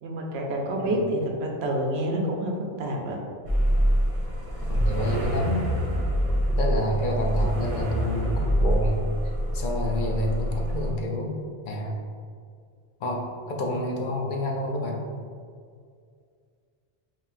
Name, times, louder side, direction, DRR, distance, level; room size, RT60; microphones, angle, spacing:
voice 1, 0.0-3.2, right 1 dB, 85° right, 0 dB, 0.9 m, -28 dB
sound 1, 3.4-10.9, equal, 35° right, 1.2 m, -25 dB
voice 2, 4.6-5.7 6.6-9.0 9.5-11.4 11.7-12.0 13.0-15.0, equal, 60° left, 1 dB, 0.7 m, -28 dB
5.5 x 2.7 x 2.5 m, 2.2 s
omnidirectional pair, 1.0 m